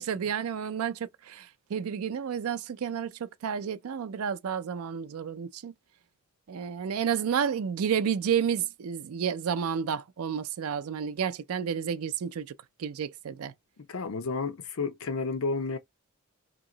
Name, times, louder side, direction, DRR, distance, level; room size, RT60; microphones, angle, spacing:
voice 1, 0.0-5.7 6.5-12.5 12.8-13.5, right 7 dB, 85° right, 0.4 m, -31 dB
voice 2, 13.9-15.8, left 4 dB, 75° left, 0.6 m, -31 dB
2.9 x 2.8 x 3.8 m
head